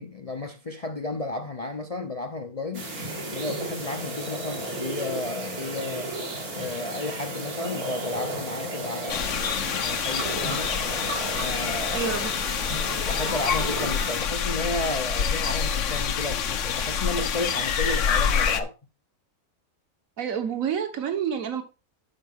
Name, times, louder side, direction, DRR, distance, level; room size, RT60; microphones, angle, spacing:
voice 1, 0.0-2.9 3.3-6.1 6.5-10.7 11.4-12.1 12.9-18.7, left 2 dB, 35° left, 0.6 m, -33 dB
sound 1, 2.7-14.2, right 2 dB, 85° right, 2.8 m, -34 dB
sound 2, 9.1-18.6, left 7 dB, 60° left, 1.1 m, -27 dB
voice 2, 11.9-12.3 20.2-21.6, right 8 dB, 65° right, 1.7 m, -28 dB
12.0 x 5.2 x 3.6 m
omnidirectional pair, 1.5 m